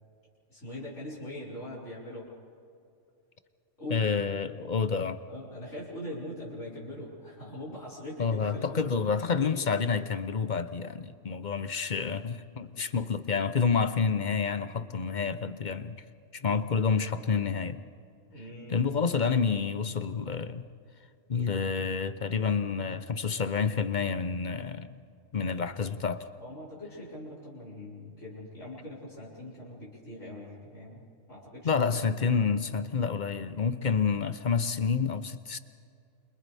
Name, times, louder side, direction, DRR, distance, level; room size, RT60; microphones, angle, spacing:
voice 1, 0.5-2.3 3.8-4.1 5.3-9.1 18.3-19.2 26.4-31.9, left 1 dB, 70° left, -7 dB, 6.1 m, -42 dB
voice 2, 3.9-5.2 8.2-16.0 16.3-17.8 18.7-20.6 21.3-25.0 25.3-26.3 31.6-35.6, left 5 dB, 45° left, 11 dB, 0.8 m, -29 dB
29.5 x 27.0 x 3.5 m, 2.5 s
omnidirectional pair, 1.3 m